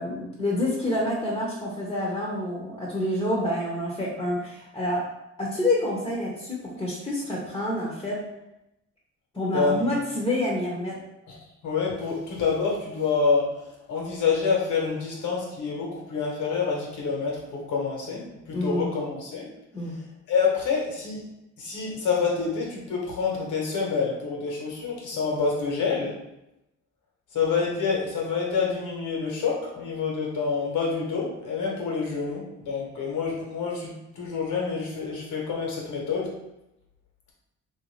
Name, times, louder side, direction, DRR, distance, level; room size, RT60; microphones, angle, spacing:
voice 1, 0.0-5.0 5.4-8.2 9.3-11.0 18.5-18.9 19.7-20.0, left 1 dB, 15° left, -3 dB, 0.8 m, -28 dB
voice 2, 9.5-10.0 11.3-11.4 11.6-13.5 13.9-18.2 18.5-19.5 20.3-21.3 21.6-26.2 27.3-36.3, left 5 dB, 75° left, -2 dB, 1.2 m, -27 dB
3.2 x 2.6 x 3.3 m, 0.88 s
cardioid pair, 90°, 30 cm